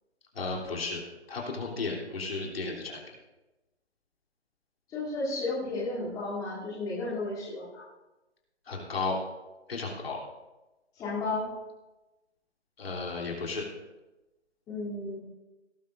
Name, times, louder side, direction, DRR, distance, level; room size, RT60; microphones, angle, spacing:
voice 1, 0.3-1.0 1.3-3.0 8.7-9.2 9.7-10.2 12.8-13.7, left 3 dB, 60° left, -2 dB, 3.2 m, -33 dB
voice 2, 4.9-7.8 10.9-11.5 14.7-15.2, left 2 dB, 10° left, -8 dB, 2.9 m, -33 dB
18.0 x 12.0 x 2.6 m, 1.1 s
figure-of-eight pair, 150°, 34 cm